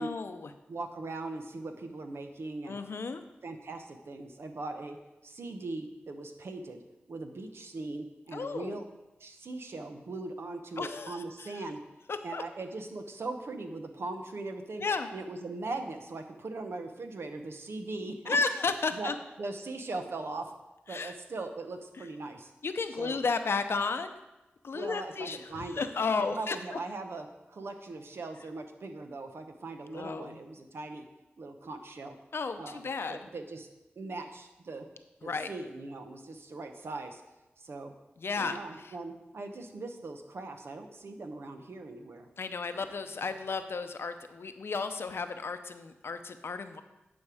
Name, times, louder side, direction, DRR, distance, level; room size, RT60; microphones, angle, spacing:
voice 1, 0.0-0.5 2.7-3.2 8.3-8.8 10.8-11.6 12.1-12.4 14.8-15.1 18.3-19.1 20.9-21.1 22.6-24.2 24.6-26.6 29.9-30.4 32.3-33.2 35.2-35.5 38.2-38.6 38.8-38.9 42.4-46.8, left 4 dB, 70° left, 9 dB, 0.6 m, -33 dB
voice 2, 0.7-2.8 3.4-5.0 5.2-6.8 7.1-8.9 9.2-11.8 12.2-14.8 15.1-18.4 18.9-19.1 19.4-20.5 20.9-22.5 23.0-23.3 24.7-25.9 26.2-31.1 31.4-32.2 32.6-33.7 34.0-34.9 35.2-37.2 37.6-37.9 38.4-42.3 42.7-42.8, right 3 dB, 75° right, 6 dB, 0.9 m, -40 dB
9.8 x 5.4 x 4.9 m, 1.0 s
cardioid pair, 50°, 4 cm